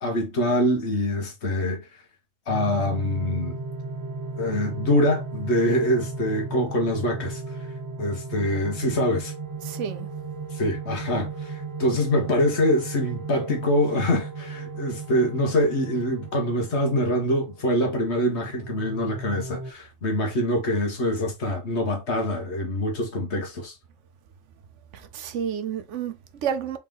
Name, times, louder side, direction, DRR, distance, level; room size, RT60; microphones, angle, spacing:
voice 1, 0.0-1.8 2.5-3.6 4.4-7.4 8.0-9.3 10.5-23.7, left 1 dB, 60° left, 1.5 m, -24 dB
sound 1, 2.5-19.7, right 3 dB, 25° right, 0.4 m, -36 dB
voice 2, 9.6-10.1 24.9-26.8, right 8 dB, 70° right, 1.0 m, -30 dB
4.1 x 3.5 x 3.6 m
omnidirectional pair, 1.3 m